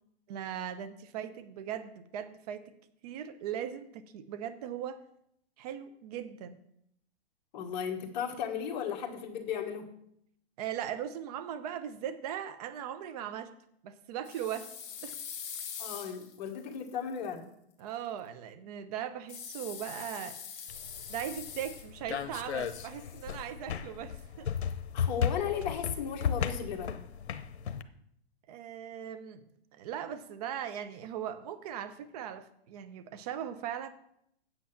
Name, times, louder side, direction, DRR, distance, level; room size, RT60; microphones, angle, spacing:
voice 1, 0.3-2.7 3.0-5.0 5.6-6.6 10.6-13.5 13.8-14.7 15.0-15.2 17.8-20.4 21.1-24.5 28.5-29.4 29.7-33.9, right 9 dB, 40° right, 11 dB, 0.9 m, -39 dB
voice 2, 7.5-10.0 15.8-17.5 24.9-26.9, left 8 dB, 45° left, 3 dB, 1.5 m, -35 dB
sound 1, 14.2-17.3 19.3-22.1 22.4-23.4, left 7 dB, 20° left, 1.3 m, -44 dB
sound 2, 20.7-27.8, left 7 dB, 85° left, 0.8 m, -35 dB
8.8 x 7.8 x 5.8 m, 0.74 s
hypercardioid pair, 150°, 32 cm